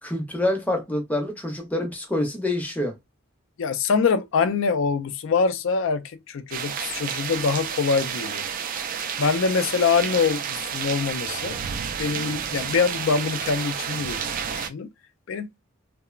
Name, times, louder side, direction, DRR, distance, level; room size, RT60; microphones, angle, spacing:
voice 1, 0.0-3.0, left 1 dB, 5° left, 0.6 m, -26 dB
voice 2, 3.6-8.5 9.2-11.6 12.0-14.3 14.5-14.9 15.3-15.5, left 5 dB, 65° left, 0.4 m, -24 dB
sound 1, 6.5-14.7, right 7 dB, 40° right, 0.3 m, -30 dB
2.9 x 2.0 x 2.3 m
head